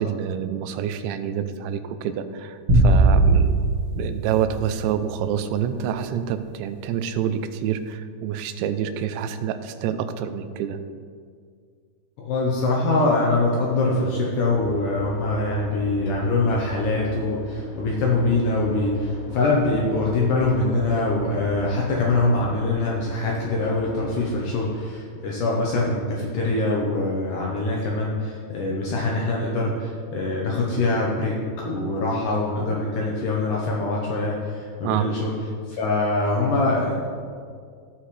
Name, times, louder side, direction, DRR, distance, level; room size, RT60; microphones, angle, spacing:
voice 1, 0.0-3.6 4.0-10.8 34.8-35.1, right 9 dB, 85° right, 10 dB, 2.9 m, -27 dB
sound 1, 2.7-5.2, right 2 dB, 55° right, 1.6 m, -19 dB
voice 2, 12.2-35.3 35.7-37.1, left 2 dB, 85° left, -3 dB, 1.8 m, -23 dB
sound 2, 14.4-24.4, right 1 dB, 65° left, 3.0 m, -39 dB
17.0 x 5.9 x 3.2 m, 2.1 s
omnidirectional pair, 5.1 m